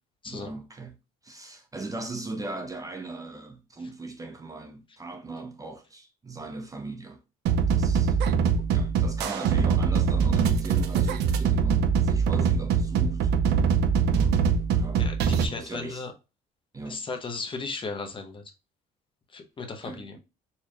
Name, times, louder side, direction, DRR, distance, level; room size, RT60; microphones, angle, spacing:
voice 1, 0.3-1.0 1.2-7.2 7.7-8.2 8.7-13.4 14.1-14.4 14.7-16.1 16.7-17.0 19.8-20.2, right 3 dB, 20° right, 0.6 m, -38 dB
sound 1, 7.5-15.5, right 6 dB, 80° right, 0.6 m, -23 dB
voice 2, 15.0-16.1 16.9-18.4 19.3-20.2, left 4 dB, 30° left, 0.9 m, -36 dB
4.3 x 3.2 x 2.2 m
cardioid pair, 110°, 17 cm